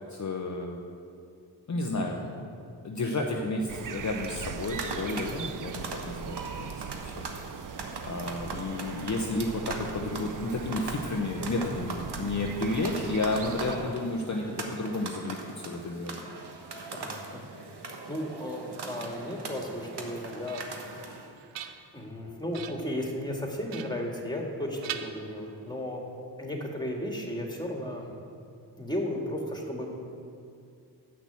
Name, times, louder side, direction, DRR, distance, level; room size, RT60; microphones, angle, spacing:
voice 1, 0.1-0.8 1.7-2.5 2.8-7.2 8.0-16.2, left 2 dB, 40° left, 1 dB, 1.0 m, -32 dB
voice 2, 1.9-2.3 5.1-5.5 11.4-11.7 12.9-13.0 13.7-13.9 16.9-17.4 17.8-20.6 20.9-21.2 21.9-26.0 26.4-28.1 28.8-29.9, left 1 dB, 10° left, 0 dB, 2.3 m, -35 dB
sound 1, 3.7-13.8, right 7 dB, 45° right, 0.6 m, -40 dB
sound 2, 4.0-21.3, right 3 dB, 65° right, 1.4 m, -41 dB
sound 3, 20.1-20.9 21.3-22.1 22.5-23.0 23.7-24.5 24.8-25.8, right 10 dB, 80° right, 0.7 m, -42 dB
8.9 x 6.1 x 7.1 m, 2.5 s
cardioid pair, 55°, 44 cm